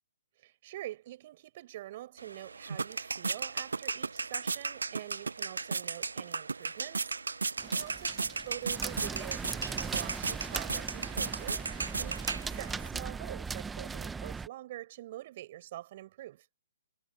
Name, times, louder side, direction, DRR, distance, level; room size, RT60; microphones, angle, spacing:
voice 1, 0.4-7.2 7.6-16.5, right 14 dB, 45° right, 7.5 m, -45 dB
sound 1, 2.2-12.9, right 4 dB, 80° right, 0.4 m, -36 dB
sound 2, 7.6-14.5, right 5 dB, 10° right, 0.7 m, -39 dB
figure-of-eight pair, 135°, 0 cm